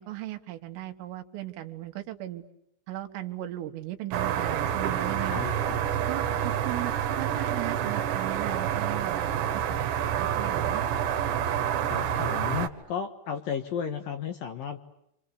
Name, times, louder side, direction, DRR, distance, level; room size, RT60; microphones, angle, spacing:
voice 1, 0.0-2.4 2.9-5.4 6.1-10.8, right 15 dB, 85° right, 7 dB, 4.3 m, -37 dB
sound 1, 4.1-12.7, right 9 dB, 70° right, 3.6 m, -28 dB
voice 2, 5.2-6.0 11.8-14.8, left 8 dB, 65° left, 6 dB, 2.4 m, -34 dB
29.5 x 27.0 x 7.0 m, 0.80 s
omnidirectional pair, 5.7 m